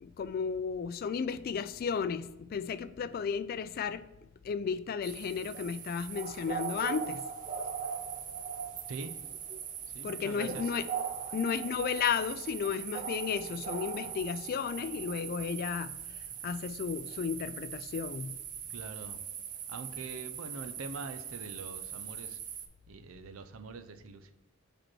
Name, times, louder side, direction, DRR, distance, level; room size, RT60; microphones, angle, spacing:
voice 1, 0.0-4.1 4.4-7.2 10.0-10.9 11.3-15.9 16.4-18.3, left 6 dB, 45° left, 0.3 m, -33 dB
sound 1, 5.0-22.7, right 7 dB, 40° right, 0.5 m, -40 dB
voice 2, 9.9-10.7 18.7-19.2 19.7-22.4 22.9-24.3, right 4 dB, 85° right, 0.6 m, -43 dB
5.1 x 4.4 x 6.1 m
head